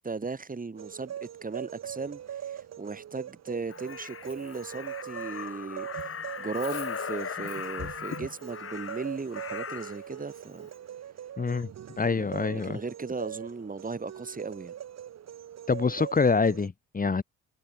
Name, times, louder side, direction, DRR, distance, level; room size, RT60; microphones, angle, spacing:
voice 1, 0.0-10.7 12.1-14.7, right 4 dB, 30° right, 6.9 m, -37 dB
sound 1, 0.8-16.7, right 10 dB, 60° right, 2.2 m, -42 dB
Crow, 3.7-10.0 11.4-11.6, left 7 dB, 45° left, 5.0 m, -38 dB
voice 2, 11.4-11.7 12.0-12.8 15.7-17.2, left 4 dB, 30° left, 2.3 m, -26 dB
cardioid pair, 90°, 30 cm